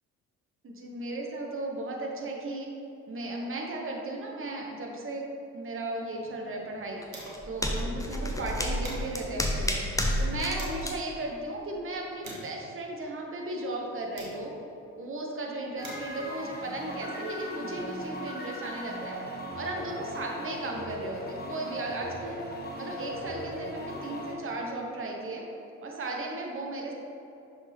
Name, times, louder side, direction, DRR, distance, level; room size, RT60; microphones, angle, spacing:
voice 1, 0.6-2.7 3.1-5.2 5.5-7.0 7.5-9.8 10.2-14.5 14.9-19.2 19.6-22.4 22.7-25.4 25.8-26.9, right 2 dB, 30° right, 0 dB, 1.1 m, -35 dB
sound 1, 5.8-7.6 7.9-8.0 8.4-10.9 11.5-14.8 15.5-17.7, right 2 dB, 90° right, 0.9 m, -48 dB
sound 2, 7.0-10.6 10.8-10.9, left 1 dB, 10° left, 0.8 m, -30 dB
sound 3, 15.8-24.3, equal, 25° left, 1.1 m, -39 dB
5.9 x 5.3 x 3.5 m, 2.7 s
figure-of-eight pair, 45°, 39 cm